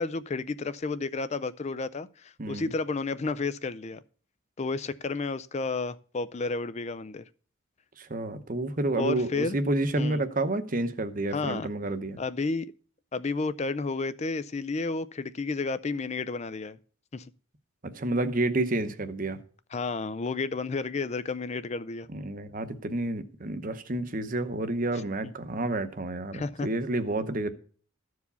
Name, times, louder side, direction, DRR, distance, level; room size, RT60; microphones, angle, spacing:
voice 1, 0.0-4.0 4.6-7.3 9.0-9.6 10.0-10.2 11.3-11.7 12.2-12.7 13.1-16.8 17.1-17.3 19.7-22.1 26.3-26.7, left 3 dB, 30° left, 0.4 m, -31 dB
voice 2, 2.4-2.7 8.0-12.2 17.8-19.4 22.1-27.5, right 2 dB, 40° right, 0.9 m, -30 dB
14.0 x 4.8 x 6.9 m
head